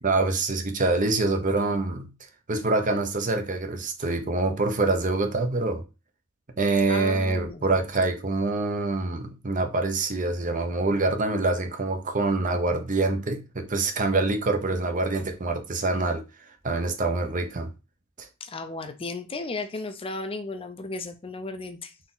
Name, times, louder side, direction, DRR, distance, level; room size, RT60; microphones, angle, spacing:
voice 1, 0.0-2.1 2.5-5.8 6.6-16.2 16.6-17.7 18.2-18.3, right 3 dB, 40° right, 0.7 m, -25 dB
voice 2, 6.9-7.7 18.4-21.9, left 3 dB, 25° left, 0.5 m, -34 dB
4.2 x 2.9 x 3.8 m
head